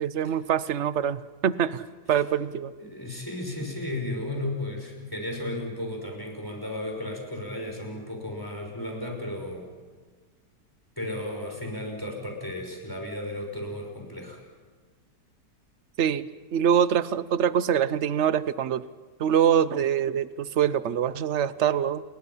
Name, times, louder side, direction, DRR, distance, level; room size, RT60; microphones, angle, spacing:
voice 1, 0.0-2.7 16.0-16.3 16.5-18.8 19.2-22.0, right 9 dB, 50° right, 16 dB, 0.9 m, -24 dB
voice 2, 2.8-9.7 11.0-14.4, left 1 dB, 10° left, 1 dB, 5.8 m, -34 dB
29.5 x 22.5 x 5.7 m, 1.5 s
omnidirectional pair, 1.9 m